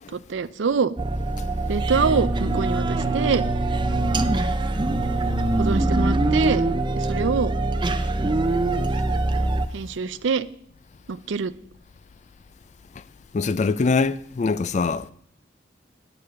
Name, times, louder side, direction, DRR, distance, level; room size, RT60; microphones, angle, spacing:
voice 1, 0.1-0.9 1.7-3.5 5.6-6.6 7.0-7.5 9.7-10.5 11.1-11.5, right 5 dB, 85° right, 0.5 m, -25 dB
sound 1, 1.0-9.7, right 2 dB, 25° right, 0.5 m, -23 dB
voice 2, 13.3-15.1, left 4 dB, 40° left, 0.4 m, -23 dB
9.8 x 6.9 x 6.3 m
head